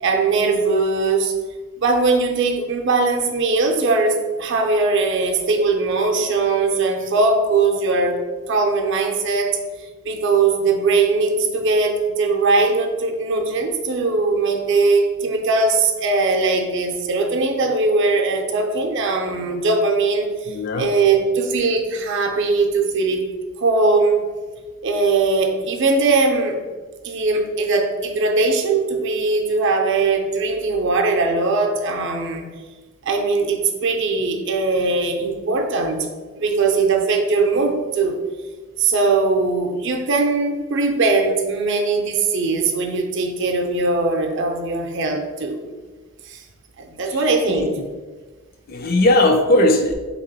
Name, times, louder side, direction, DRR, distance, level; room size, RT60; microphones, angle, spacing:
voice 1, 0.0-1.3 1.8-8.2 8.5-9.6 10.0-24.2 24.8-26.6 27.0-32.5 33.0-36.1 36.4-38.2 38.8-45.6 46.2-46.4 46.8-47.7, right 3 dB, 60° right, 3 dB, 0.5 m, -20 dB
voice 2, 20.5-20.9 47.5-47.7 48.7-49.9, left 1 dB, 45° left, 4 dB, 0.4 m, -17 dB
3.6 x 3.0 x 3.9 m, 1.4 s
head